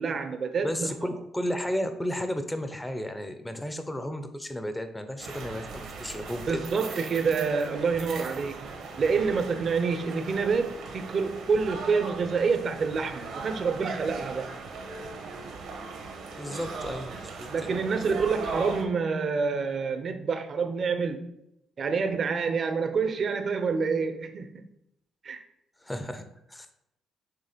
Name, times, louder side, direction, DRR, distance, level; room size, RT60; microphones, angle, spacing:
voice 1, 0.0-0.9 6.5-14.5 17.5-21.4 21.8-24.7 25.2-25.4, right 5 dB, 50° right, 8 dB, 0.8 m, -27 dB
voice 2, 0.6-6.4 16.4-17.7 25.8-26.7, equal, 10° left, 8 dB, 0.8 m, -33 dB
sound 1, 5.2-18.8, right 4 dB, 80° right, 1.4 m, -39 dB
6.8 x 3.3 x 5.1 m, 0.82 s
cardioid pair, 90°, 0 cm